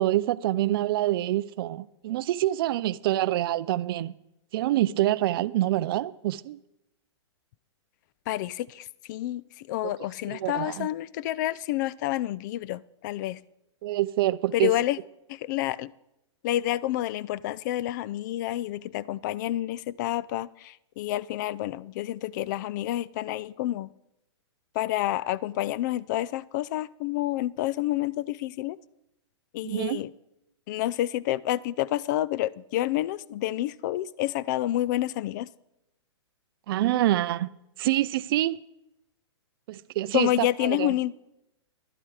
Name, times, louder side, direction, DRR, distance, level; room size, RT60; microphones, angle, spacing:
voice 1, 0.0-4.1 4.5-6.6 9.8-9.9 10.3-10.9 13.8-14.7 29.6-30.0 36.7-37.5 37.8-38.6 39.7-40.9, right 14 dB, 50° right, 0.4 m, -26 dB
voice 2, 8.3-13.4 14.5-15.0 15.3-15.9 16.4-23.9 24.8-28.8 29.5-30.1 30.7-35.5 40.1-41.1, left 14 dB, 40° left, 0.3 m, -29 dB
11.5 x 11.0 x 4.8 m
hypercardioid pair, 130°, 15 cm